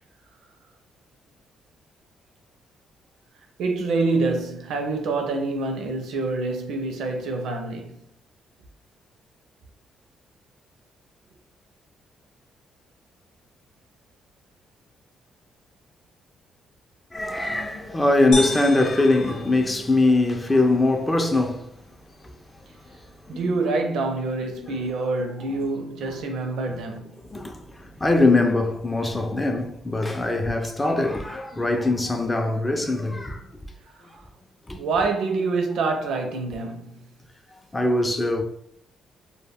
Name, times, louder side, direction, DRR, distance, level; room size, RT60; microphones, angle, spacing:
voice 1, 3.6-8.0 23.3-27.2 33.9-34.2 34.7-37.0, right 3 dB, 75° right, 0.5 m, -26 dB
voice 2, 17.1-21.7 22.2-22.3 22.9-23.4 24.6-25.1 26.1-26.2 27.3-33.5 34.0-34.1 34.7-34.8 37.7-38.4, left 2 dB, 15° left, 0.4 m, -22 dB
sound 1, 18.3-20.3, left 2 dB, 80° left, 0.5 m, -32 dB
2.2 x 2.1 x 3.4 m
cardioid pair, 90°, 0 cm